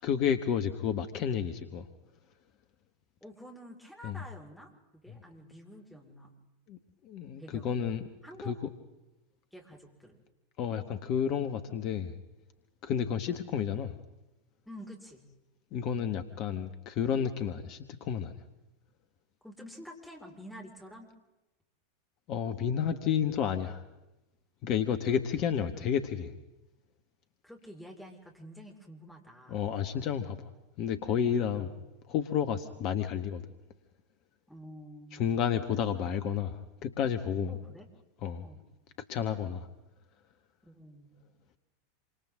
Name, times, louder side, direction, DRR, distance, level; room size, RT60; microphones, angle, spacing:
voice 1, 0.0-1.9 4.0-4.2 5.1-5.2 6.7-6.8 7.0-8.0 8.4-8.6 10.6-12.1 12.8-13.9 15.7-18.3 22.3-23.8 24.6-26.3 29.5-30.5 30.8-31.7 32.1-33.4 35.1-37.5 38.2-38.4 39.1-39.7, left 8 dB, 45° left, 9 dB, 1.4 m, -31 dB
voice 2, 3.2-6.3 7.4-7.8 8.2-8.6 9.5-10.2 14.7-15.3 19.4-21.1 27.4-29.6 34.5-35.4 37.5-37.9 38.4-38.6 40.6-41.2, equal, ahead, 0 dB, 5.0 m, -48 dB
27.0 x 26.0 x 3.7 m, 0.98 s
figure-of-eight pair, 85°, 0 cm